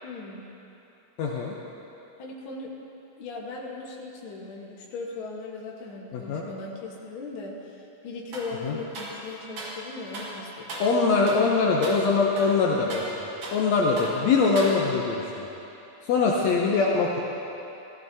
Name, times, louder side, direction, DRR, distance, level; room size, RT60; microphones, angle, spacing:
voice 1, 0.0-0.5 2.2-2.7 3.2-10.7, left 3 dB, 50° left, -2 dB, 1.8 m, -38 dB
voice 2, 1.2-1.6 6.1-6.4 8.6-8.8 10.8-15.5 16.0-17.2, left 4 dB, 70° left, -2 dB, 2.0 m, -23 dB
sound 1, 8.3-8.6 8.9-9.8 10.1-10.4 10.7-11.0 11.3-11.5 11.8-12.0 12.4-13.7 14.0-14.2 14.6-15.1, right 1 dB, 55° right, 2.5 m, -37 dB
16.0 x 14.5 x 2.8 m, 3.0 s
omnidirectional pair, 3.4 m